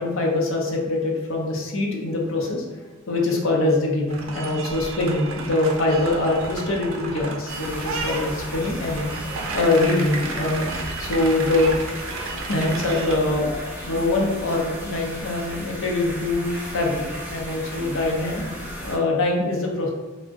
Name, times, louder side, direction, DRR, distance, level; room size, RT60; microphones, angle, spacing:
voice 1, 0.0-2.6 3.1-9.1 9.5-10.7 11.0-11.7 12.5-13.5 13.9-18.4 18.8-19.9, left 2 dB, 75° left, -1 dB, 0.6 m, -23 dB
sound 1, 4.1-13.1, right 3 dB, 85° right, 0.4 m, -33 dB
sound 2, 7.5-19.0, equal, 10° right, 0.6 m, -35 dB
2.4 x 2.1 x 3.5 m, 1.2 s
head